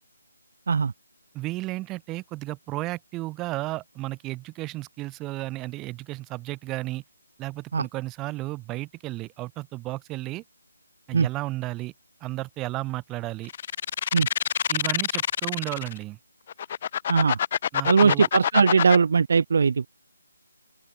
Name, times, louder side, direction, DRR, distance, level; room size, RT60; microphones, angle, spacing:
voice 1, 1.3-7.0 7.4-10.4 11.1-11.9 12.2-13.5 14.7-16.2 17.7-18.3, right 19 dB, 15° right, 4.7 m, -33 dB
sound 1, 13.5-16.0 16.5-19.0, left 9 dB, 35° left, 1.0 m, -26 dB
voice 2, 17.1-17.4 17.9-19.9, right 5 dB, 50° right, 1.0 m, -20 dB
figure-of-eight pair, 150°, 0 cm